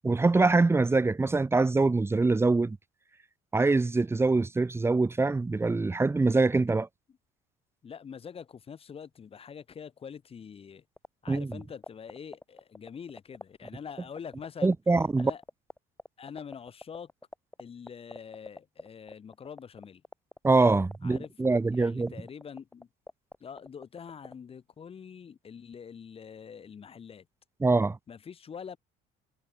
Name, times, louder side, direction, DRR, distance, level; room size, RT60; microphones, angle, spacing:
voice 1, 0.0-2.8 3.5-6.9 11.3-11.5 14.6-15.3 20.4-22.1 27.6-28.0, right 3 dB, 15° right, 1.6 m, -24 dB
voice 2, 7.8-10.8 11.2-14.7 15.2-15.4 16.2-17.1 17.6-20.0 21.0-21.3 21.7-22.9 23.4-27.3 28.1-28.8, left 7 dB, 30° left, 4.2 m, -44 dB
sound 1, 11.0-24.3, left 2 dB, 10° left, 2.7 m, -43 dB
cardioid pair, 130°, 18 cm